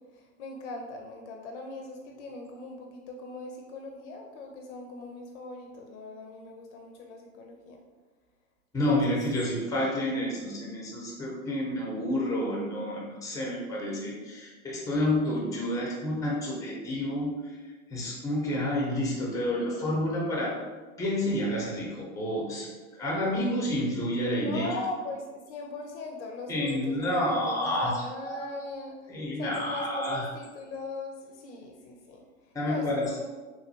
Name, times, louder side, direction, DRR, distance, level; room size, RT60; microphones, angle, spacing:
voice 1, 0.0-7.8 8.8-9.2 24.4-33.3, left 3 dB, 60° left, 2 dB, 0.5 m, -40 dB
voice 2, 8.7-17.3 17.9-20.5 21.0-22.7 23.0-24.7 26.5-28.4 29.1-30.3 32.5-33.0, left 1 dB, 10° left, -3 dB, 0.8 m, -29 dB
3.1 x 2.5 x 2.7 m, 1.3 s
hypercardioid pair, 115°, 41 cm